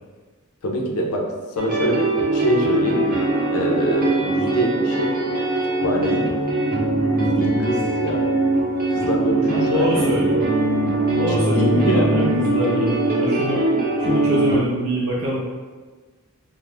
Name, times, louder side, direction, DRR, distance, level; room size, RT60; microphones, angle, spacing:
voice 1, 0.6-1.3 1.6-3.0 3.5-5.1 5.8-6.3 7.2-8.2 8.9-10.1 11.3-12.1, equal, 85° left, 1 dB, 0.6 m, -24 dB
sound 1, 1.6-14.6, right 2 dB, 45° right, 0.7 m, -21 dB
voice 2, 9.5-10.4 11.2-13.6 14.0-15.4, equal, 75° right, -5 dB, 0.6 m, -24 dB
4.5 x 2.0 x 3.3 m, 1.4 s
head